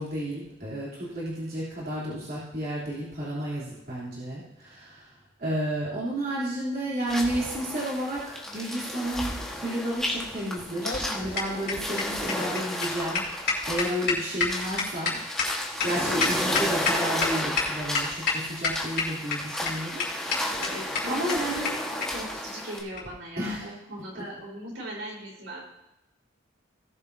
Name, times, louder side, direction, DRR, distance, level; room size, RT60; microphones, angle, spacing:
voice 1, 0.0-5.1 5.4-13.2 13.7-15.5 15.8-20.5 21.1-21.7 23.4-23.7, right 1 dB, 50° right, -8 dB, 3.2 m, -32 dB
sound 1, 7.1-22.8, left 1 dB, 5° left, 1.4 m, -33 dB
sound 2, 10.6-17.3 17.6-17.7 17.9-18.3 18.6-19.3 19.7-19.8 20.0-20.1 20.3-20.4 20.6-20.7 20.9-21.0 21.3-21.4 21.6-21.7 22.0-22.1 22.9-23.1, left 5 dB, 55° left, 3.7 m, -27 dB
voice 2, 20.5-25.6, right 1 dB, 75° right, -4 dB, 4.2 m, -39 dB
18.5 x 7.4 x 2.7 m, 0.91 s
head